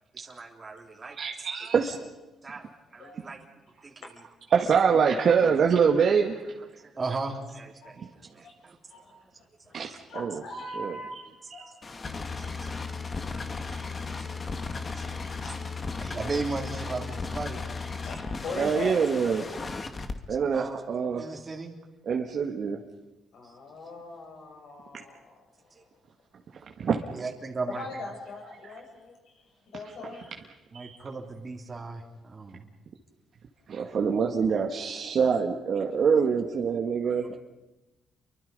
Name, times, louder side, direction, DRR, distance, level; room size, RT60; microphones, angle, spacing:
voice 1, 0.1-1.2 2.4-3.4 3.8-3.9 6.8-8.0 8.4-8.8 12.4-12.8 13.2-13.7 14.2-15.2 16.0-17.6 20.5-20.7 21.2-21.7 23.4-23.5 25.7-25.8 27.1-27.8 30.7-32.7 37.0-37.4, right 3 dB, 30° right, 0 dB, 3.2 m, -37 dB
voice 2, 1.2-2.0 4.5-6.5 9.7-10.4 10.8-11.0 11.6-11.7 18.6-19.5 20.3-21.3 22.1-22.8 24.9-25.0 26.8-27.1 30.7-30.9 33.7-37.4, right 6 dB, 55° right, 2 dB, 1.9 m, -25 dB
voice 3, 8.9-9.8 10.1-12.5 14.2-14.5 15.0-15.1 15.4-15.9 18.0-18.9 19.3-19.5 23.3-25.9 27.7-29.4 29.7-30.3, left 3 dB, 70° left, 1 dB, 7.6 m, -41 dB
sound 1, 11.8-20.1, left 4 dB, 35° left, 2.0 m, -35 dB
29.5 x 24.0 x 5.5 m, 1.1 s
cardioid pair, 90°, 0 cm